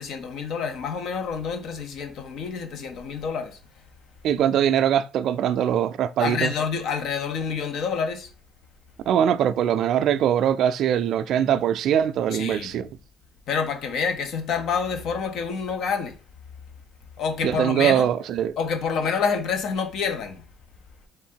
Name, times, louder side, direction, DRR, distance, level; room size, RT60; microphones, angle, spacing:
voice 1, 0.0-3.6 6.2-8.3 12.3-12.8 13.5-16.2 17.2-18.1 18.6-20.4, left 6 dB, 65° left, 0.8 m, -28 dB
voice 2, 4.2-6.5 9.1-12.9 17.4-18.5, right 9 dB, 65° right, 0.3 m, -22 dB
3.6 x 2.5 x 4.4 m
cardioid pair, 95°, 0 cm